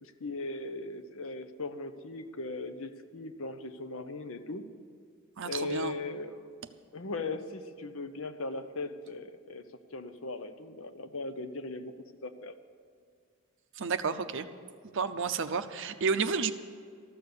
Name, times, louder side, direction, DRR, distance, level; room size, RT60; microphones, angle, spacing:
voice 1, 0.0-4.6 5.4-6.6 6.9-9.7 9.9-11.9 12.2-12.5, left 3 dB, 65° left, 10 dB, 0.8 m, -38 dB
voice 2, 5.4-5.9 13.8-14.5 14.9-16.5, right 5 dB, 60° right, 11 dB, 0.6 m, -31 dB
14.0 x 6.8 x 9.6 m, 2.1 s
head